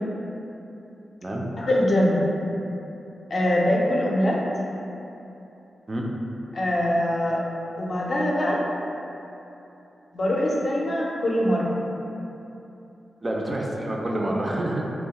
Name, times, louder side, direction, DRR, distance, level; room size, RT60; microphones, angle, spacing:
voice 1, 1.3-2.3 3.3-4.4 6.5-7.4 7.8-8.6 10.1-11.7, left 1 dB, 55° left, -3 dB, 0.4 m, -23 dB
voice 2, 13.2-14.8, right 1 dB, 30° right, -1 dB, 0.3 m, -27 dB
2.9 x 2.0 x 2.8 m, 2.9 s
cardioid pair, 85°, 0 cm